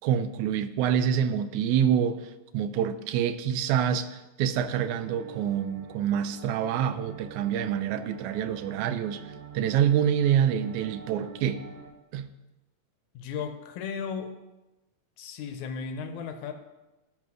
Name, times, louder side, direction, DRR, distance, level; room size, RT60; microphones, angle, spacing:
voice 1, 0.0-11.7 12.1-12.3, right 9 dB, 80° right, 2.0 m, -26 dB
sound 1, 4.5-11.9, right 6 dB, 60° right, 2.2 m, -46 dB
voice 2, 13.1-14.3 15.2-16.5, left 6 dB, 80° left, 2.3 m, -35 dB
12.5 x 5.3 x 6.2 m
omnidirectional pair, 3.4 m